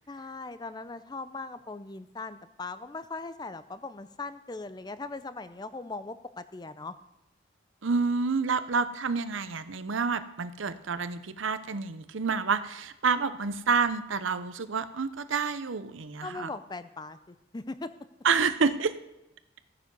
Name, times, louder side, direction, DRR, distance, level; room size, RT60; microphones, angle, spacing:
voice 1, 0.1-7.0 16.2-17.9, left 3 dB, 20° left, 13 dB, 0.5 m, -39 dB
voice 2, 7.8-16.5 18.2-19.0, right 5 dB, 80° right, 13 dB, 0.7 m, -28 dB
14.5 x 9.4 x 5.4 m, 0.91 s
head